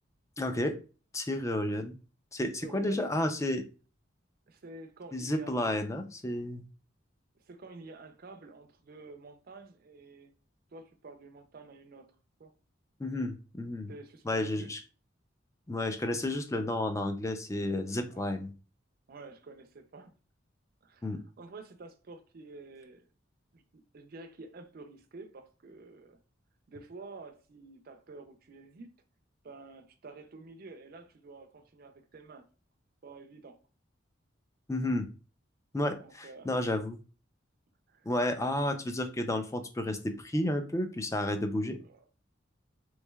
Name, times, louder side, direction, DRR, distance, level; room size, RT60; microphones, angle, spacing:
voice 1, 0.4-0.8 1.1-1.9 2.3-3.6 5.1-6.6 13.0-13.9 14.3-14.8 15.7-18.5 21.0-21.2 34.7-35.1 35.7-37.0 38.1-41.8, left 1 dB, 15° left, 0.4 m, -31 dB
voice 2, 2.6-3.2 4.5-5.9 7.5-10.3 10.7-12.5 13.9-14.8 18.1-18.3 19.1-20.2 20.8-23.1 23.5-26.2 26.7-28.9 29.4-32.4 33.0-33.6 36.0-36.7 37.9-38.1 38.4-38.8 41.8-42.1, right 3 dB, 50° right, 0.5 m, -50 dB
3.6 x 3.1 x 2.2 m
head